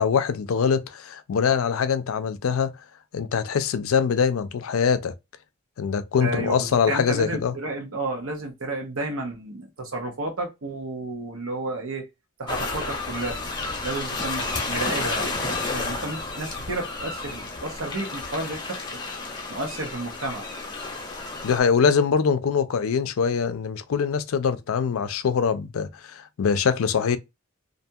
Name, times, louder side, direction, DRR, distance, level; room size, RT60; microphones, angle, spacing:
voice 1, 0.0-2.7 3.1-5.1 5.8-7.5 21.4-27.2, left 6 dB, 80° left, 0.4 m, -23 dB
voice 2, 6.2-12.1 12.4-13.4 13.8-18.8 19.5-20.5, right 2 dB, 85° right, 1.0 m, -31 dB
sound 1, 12.5-21.6, left 3 dB, 20° left, 0.7 m, -31 dB
2.6 x 2.3 x 2.7 m
head